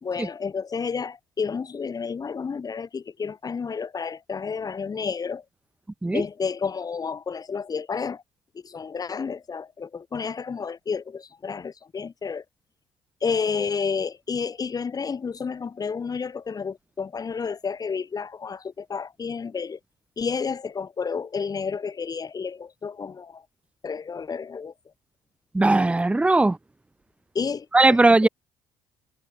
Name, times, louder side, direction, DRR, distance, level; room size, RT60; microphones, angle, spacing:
voice 1, 0.0-5.4 6.1-8.2 8.6-12.4 13.2-19.8 20.2-23.4 23.8-24.7 27.3-28.0 28.2-28.3, left 5 dB, 35° left, 3.1 m, -30 dB
voice 2, 25.5-26.6 27.7-28.3, right 2 dB, 10° right, 0.8 m, -18 dB
hypercardioid pair, 55°, 11 cm